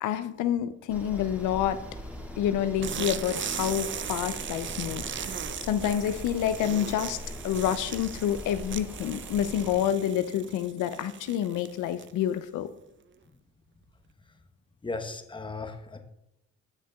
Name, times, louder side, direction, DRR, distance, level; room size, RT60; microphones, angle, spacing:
voice 1, 0.0-1.8 2.4-7.2 7.4-12.7, left 10 dB, 85° left, 11 dB, 0.6 m, -28 dB
sound 1, 0.9-9.8, equal, 5° right, 2.0 m, -41 dB
sound 2, 2.8-12.3, right 8 dB, 40° right, 0.5 m, -38 dB
voice 2, 14.8-16.0, left 3 dB, 15° left, 5 dB, 1.0 m, -36 dB
15.5 x 6.5 x 2.3 m, 0.84 s
cardioid pair, 90°, 30 cm